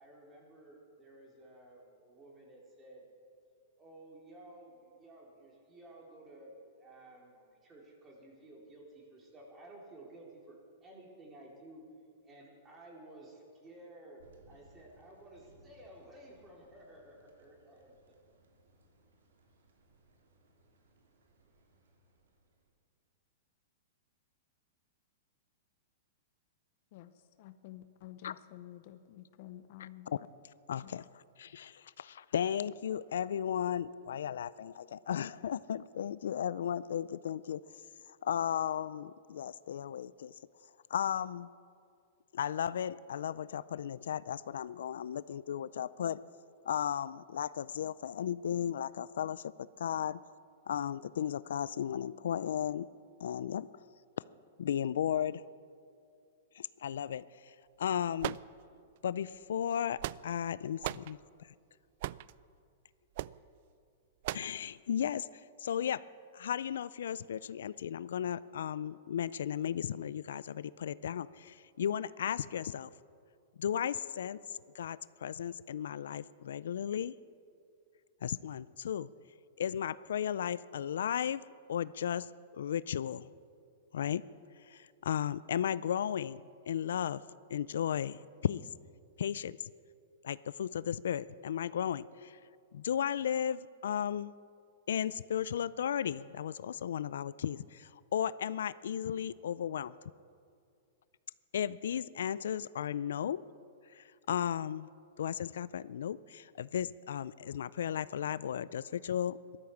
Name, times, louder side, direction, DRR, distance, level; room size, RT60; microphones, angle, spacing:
voice 1, 0.0-3.0 3.8-11.8 12.2-18.3, right 1 dB, 20° right, -2 dB, 4.1 m, -54 dB
Thunder, 14.2-22.7, right 2 dB, 90° right, 2.8 m, -66 dB
voice 2, 26.9-30.1 30.8-30.9, left 14 dB, 55° left, 11 dB, 0.8 m, -51 dB
voice 3, 30.7-31.1 31.4-37.6 38.2-40.3 40.9-41.5 42.3-46.2 46.7-50.2 50.7-52.9 53.2-53.7 54.6-55.4 56.5-58.4 59.0-60.0 60.2-61.5 64.3-65.3 65.6-66.0 66.3-72.9 73.6-74.4 74.7-77.1 78.2-79.1 79.6-81.4 81.7-82.3 82.5-83.3 83.9-84.2 84.7-87.2 87.5-88.7 89.2-89.7 90.2-92.4 92.7-94.3 94.9-100.0 101.5-103.4 103.9-104.9 105.2-109.6, left 9 dB, 80° left, 18 dB, 0.4 m, -35 dB
sound 1, 58.2-59.0 59.7-60.5 60.8-61.1 62.0-62.3 63.1-63.4 64.2-64.6, right 16 dB, 55° right, 0.3 m, -38 dB
15.0 x 12.5 x 7.2 m, 2.4 s
hypercardioid pair, 135°, 0 cm